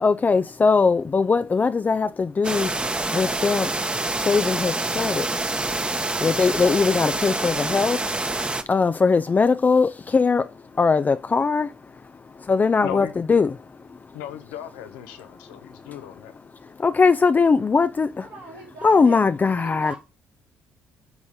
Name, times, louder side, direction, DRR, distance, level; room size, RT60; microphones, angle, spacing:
voice 1, 0.0-2.7 3.1-3.7 4.3-5.3 6.2-8.0 8.7-10.4 10.8-11.7 12.5-13.5 16.8-18.1 18.8-19.9, left 4 dB, 30° left, 0.5 m, -20 dB
sound 1, 2.4-8.6, right 2 dB, 20° right, 1.1 m, -26 dB
voice 2, 12.8-13.1 14.1-16.3, left 11 dB, 80° left, 1.0 m, -36 dB
voice 3, 18.2-19.2 19.6-20.0, right 2 dB, 85° right, 4.1 m, -39 dB
9.6 x 4.1 x 5.0 m
hypercardioid pair, 55°, 6 cm